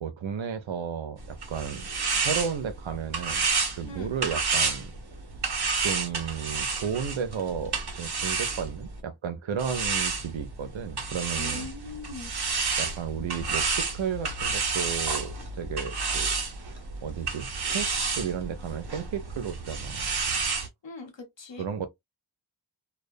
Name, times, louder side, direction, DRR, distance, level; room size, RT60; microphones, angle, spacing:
voice 1, 0.0-1.9 2.1-3.4 3.7-4.9 5.8-11.7 12.8-16.7 17.0-20.0 21.6-21.9, right 7 dB, 90° right, 0.6 m, -33 dB
sound 1, 1.2-9.0 9.6-20.7, right 4 dB, 55° right, 0.9 m, -30 dB
voice 2, 11.4-12.3 20.8-21.7, left 3 dB, 70° left, 1.1 m, -41 dB
2.3 x 2.2 x 2.6 m
cardioid pair, 40°, 46 cm